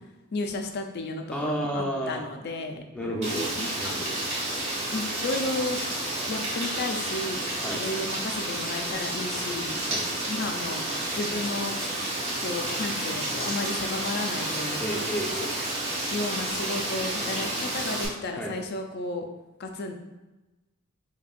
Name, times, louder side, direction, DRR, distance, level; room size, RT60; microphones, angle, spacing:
voice 1, 0.3-2.8 3.6-4.0 4.9-5.8 6.3-7.5 7.7-9.8 10.3-10.8 11.2-11.8 12.4-14.8 16.1-19.3 19.6-20.0, left 2 dB, 45° left, 5 dB, 0.4 m, -33 dB
voice 2, 1.3-2.2 2.9-3.5 3.8-4.1 7.6-7.8 9.9-10.1 14.8-15.5 18.4-18.5, equal, 5° left, -3 dB, 0.6 m, -31 dB
Rain, 3.2-18.1, right 1 dB, 30° right, 1.2 m, -30 dB
5.1 x 2.8 x 2.4 m, 1.1 s
head